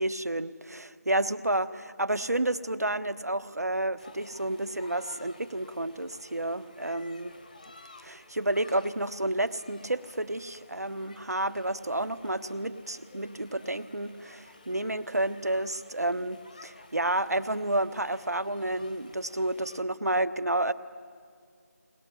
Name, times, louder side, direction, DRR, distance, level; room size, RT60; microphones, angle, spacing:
voice 1, 0.0-7.3 8.0-20.7, right 1 dB, 75° right, 10 dB, 1.2 m, -30 dB
sound 1, 4.0-19.8, left 2 dB, 30° left, 1.3 m, -53 dB
21.5 x 20.5 x 9.3 m, 2.2 s
figure-of-eight pair, 170°, 9 cm